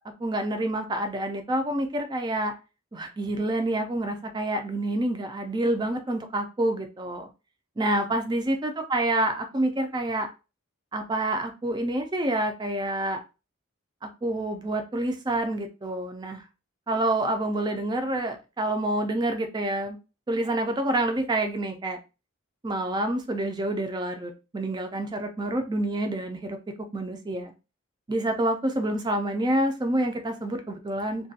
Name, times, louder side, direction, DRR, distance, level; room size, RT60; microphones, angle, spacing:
voice 1, 0.2-2.5 2.9-7.3 7.8-10.3 10.9-13.2 14.2-16.4 16.9-20.0 20.3-22.0 22.6-26.6 26.9-27.5 28.1-31.3, right 1 dB, 20° right, 6 dB, 0.4 m, -27 dB
2.4 x 2.2 x 2.6 m, 0.30 s
head